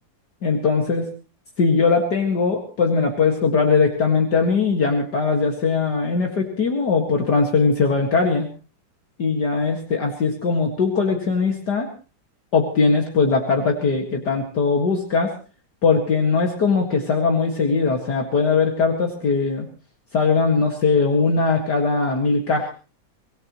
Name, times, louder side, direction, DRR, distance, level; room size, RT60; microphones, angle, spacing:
voice 1, 0.4-1.1 1.6-8.5 9.2-11.9 12.5-15.3 15.8-19.7 20.1-22.7, left 4 dB, 60° left, 2 dB, 2.5 m, -20 dB
24.5 x 18.0 x 3.1 m, 0.35 s
omnidirectional pair, 2.1 m